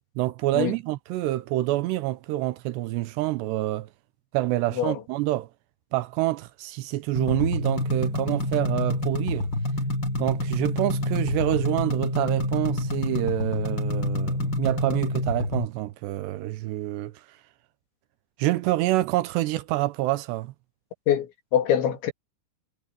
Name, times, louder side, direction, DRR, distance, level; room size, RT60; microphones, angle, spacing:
voice 1, 0.2-3.9 4.3-5.5 5.9-9.5 10.2-17.1 18.4-20.5, right 16 dB, 80° right, 2.9 m, -27 dB
sound 1, 7.2-15.7, left 1 dB, 25° left, 3.3 m, -27 dB
voice 2, 21.1-22.1, left 10 dB, 85° left, 4.6 m, -24 dB
omnidirectional pair, 5.1 m